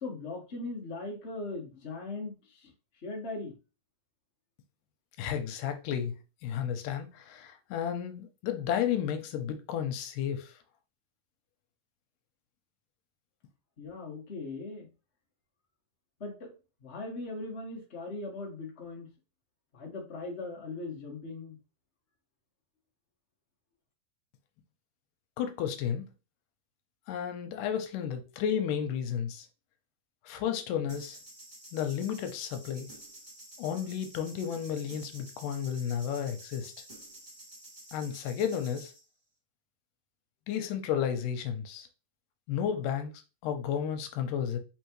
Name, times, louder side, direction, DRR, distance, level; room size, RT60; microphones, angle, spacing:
voice 1, 0.0-2.7 3.0-3.5 13.8-14.9 16.2-16.5 16.8-19.1 19.7-21.6, left 3 dB, 50° left, 0.8 m, -39 dB
voice 2, 5.2-6.1 6.4-10.5 25.4-26.1 27.1-29.5 30.3-31.2 31.7-32.9 33.6-36.7 37.9-38.9 40.5-41.9 42.5-43.1 43.4-44.6, left 8 dB, 85° left, 2.3 m, -32 dB
sound 1, 30.9-39.0, right 1 dB, 20° right, 1.3 m, -50 dB
4.9 x 3.6 x 3.0 m
omnidirectional pair, 3.7 m